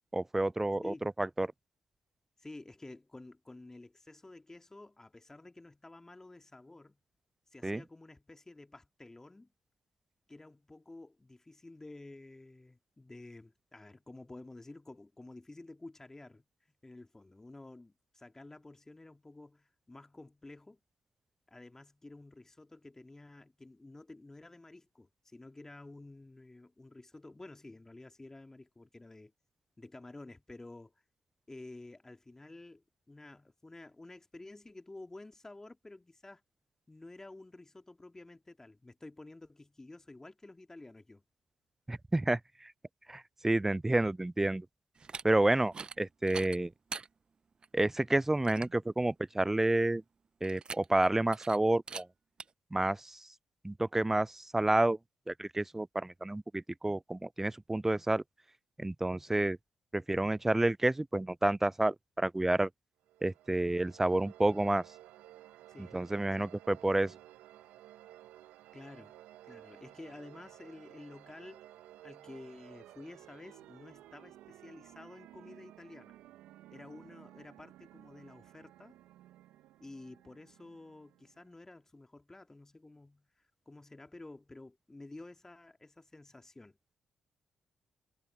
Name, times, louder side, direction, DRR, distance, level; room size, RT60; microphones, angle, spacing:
voice 1, 0.1-1.5 7.6-7.8 41.9-42.7 43.1-44.7 45.2-46.7 47.7-50.0 50.4-52.1 52.7-53.2 53.6-55.0 55.3-58.2 58.8-59.6 59.9-62.7 63.2-64.8 65.9-67.1, right 2 dB, 15° right, 0.3 m, -30 dB
voice 2, 2.4-7.0 7.5-9.5 10.3-16.4 16.8-20.8 21.5-29.3 29.8-30.9 31.5-36.4 36.9-41.2 59.3-59.5 65.7-66.0 66.3-66.5 68.7-69.2 69.4-71.7 72.0-76.2 76.7-79.0 79.8-86.8, left 2 dB, 25° left, 2.3 m, -51 dB
sound 1, 44.9-45.2 45.7-46.0 46.3-47.1 47.6-47.7 48.1-48.2 48.4-48.8 50.4-51.1 51.3-51.6 51.9-52.0 52.4-52.5, right 5 dB, 45° right, 0.8 m, -43 dB
sound 2, 63.0-81.7, right 14 dB, 80° right, 1.5 m, -56 dB
hypercardioid pair, 40°, 2 cm